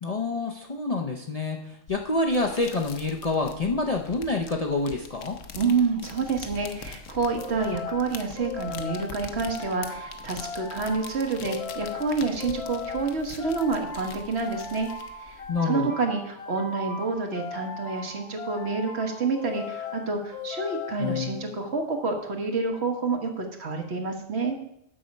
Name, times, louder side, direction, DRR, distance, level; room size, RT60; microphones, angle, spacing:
voice 1, 0.0-1.6 1.9-5.4 15.5-15.9, left 3 dB, 40° left, 1 dB, 0.6 m, -27 dB
sound 1, 1.9-15.5, left 5 dB, 80° left, 1.1 m, -44 dB
voice 2, 5.5-14.9 15.2-24.6, right 4 dB, 55° right, 3 dB, 1.5 m, -28 dB
sound 2, 7.4-21.9, left 5 dB, 55° left, 1.1 m, -37 dB
7.6 x 6.9 x 5.2 m, 0.77 s
omnidirectional pair, 1.3 m